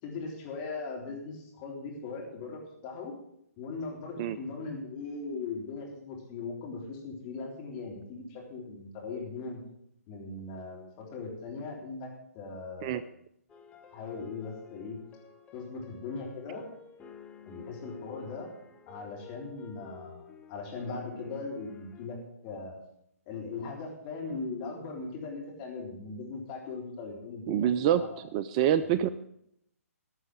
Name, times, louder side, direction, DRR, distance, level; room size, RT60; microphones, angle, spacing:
voice 1, 0.0-3.1 3.6-9.6 10.1-12.1 12.3-13.1 13.9-15.0 15.5-16.6 17.5-18.5 18.9-22.7 23.3-28.3 28.8-29.0, left 4 dB, 30° left, 0 dB, 3.7 m, -39 dB
sound 1, 13.5-22.1, left 6 dB, 15° left, 1.2 m, -51 dB
voice 2, 27.5-29.1, right 10 dB, 25° right, 14 dB, 0.4 m, -26 dB
13.0 x 6.4 x 8.5 m, 0.74 s
figure-of-eight pair, 135°, 8 cm